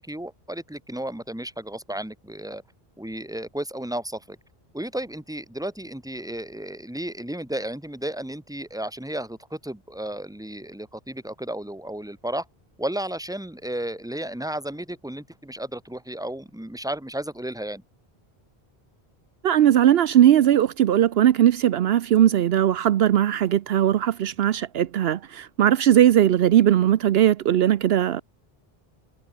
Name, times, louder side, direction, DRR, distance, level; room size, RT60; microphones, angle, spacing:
voice 1, 0.0-2.6 3.0-4.4 4.7-12.5 12.8-17.8, right 1 dB, 5° right, 1.9 m, -33 dB
voice 2, 19.4-28.2, right 11 dB, 75° right, 0.8 m, -19 dB
omnidirectional pair, 1.1 m